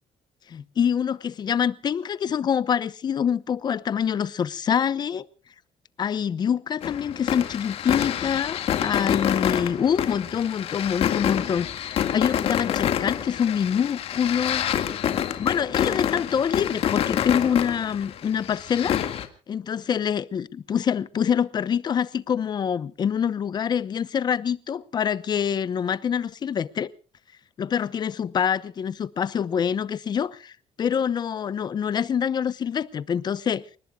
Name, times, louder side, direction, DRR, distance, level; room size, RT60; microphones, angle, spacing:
voice 1, 0.5-5.3 6.0-14.7 15.4-19.0 19.5-26.9 27.6-30.5 30.8-33.6, left 8 dB, 40° left, 0.8 m, -25 dB
sound 1, 6.8-19.3, left 10 dB, 60° left, 2.0 m, -27 dB
29.5 x 19.0 x 2.4 m
cardioid pair, 145°, 11 cm